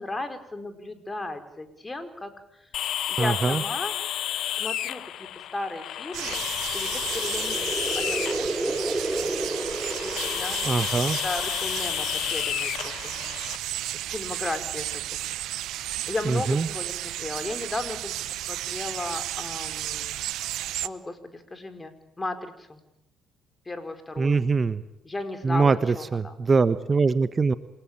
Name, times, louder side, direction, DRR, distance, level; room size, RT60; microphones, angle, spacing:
voice 1, 0.0-2.7 3.1-3.9 4.5-13.4 13.9-15.0 15.4-15.7 16.1-20.2 20.8-22.8 23.6-24.4 25.0-26.4, left 2 dB, 20° left, 8 dB, 4.9 m, -36 dB
sound 1, 2.7-13.6, left 12 dB, 65° left, 1.0 m, -31 dB
voice 2, 3.2-3.6 10.6-11.2 16.3-16.7 24.2-24.8 25.4-27.5, right 4 dB, 35° right, 13 dB, 1.2 m, -23 dB
sound 2, 6.1-20.9, right 13 dB, 70° right, 0.8 m, -33 dB
sound 3, 6.7-11.0, right 2 dB, 20° right, 4.0 m, -31 dB
28.0 x 18.0 x 9.0 m, 0.85 s
hypercardioid pair, 50°, 0 cm